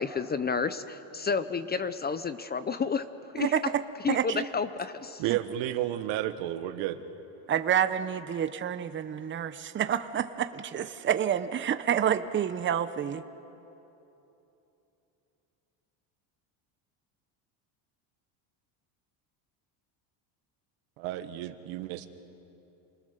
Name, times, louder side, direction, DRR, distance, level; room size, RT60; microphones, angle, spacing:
voice 1, 0.0-3.0 3.3-3.7 4.0-5.2, left 5 dB, 20° left, 12 dB, 0.6 m, -30 dB
voice 2, 4.1-4.4 7.5-13.2, right 9 dB, 25° right, 11 dB, 0.7 m, -28 dB
voice 3, 5.2-7.1 21.0-22.1, right 13 dB, 80° right, 9 dB, 1.4 m, -32 dB
28.0 x 20.0 x 6.7 m, 3.0 s
cardioid pair, 130°, 47 cm